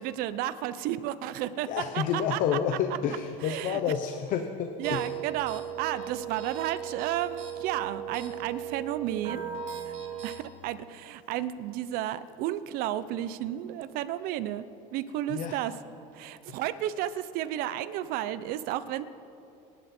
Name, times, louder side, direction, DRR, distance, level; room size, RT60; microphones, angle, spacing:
voice 1, 0.0-2.6 3.4-3.8 4.8-9.5 9.8-9.9 10.2-14.6 14.9-15.7 16.1-19.0, right 12 dB, 60° right, 14 dB, 0.8 m, -32 dB
voice 2, 1.6-5.0 15.3-15.6 16.5-16.6, left 8 dB, 50° left, 6 dB, 1.0 m, -29 dB
sound 1, 4.8-10.4, right 8 dB, 40° right, 2.6 m, -37 dB
27.5 x 11.0 x 4.4 m, 2.8 s
supercardioid pair, 125°, 17 cm